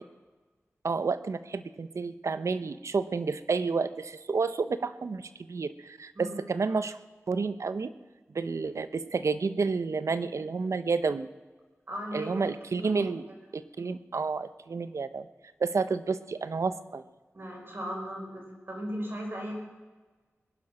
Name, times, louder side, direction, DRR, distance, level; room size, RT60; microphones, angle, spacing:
voice 1, 0.8-7.0 7.3-7.9 8.3-11.3 12.1-13.2 13.5-15.3 15.6-17.0, right 4 dB, 80° right, 12 dB, 0.7 m, -30 dB
voice 2, 11.9-12.5 12.8-13.1 17.3-19.5, equal, 50° right, -1 dB, 5.2 m, -37 dB
21.0 x 10.5 x 5.9 m, 1.3 s
wide cardioid pair, 80°, 5 cm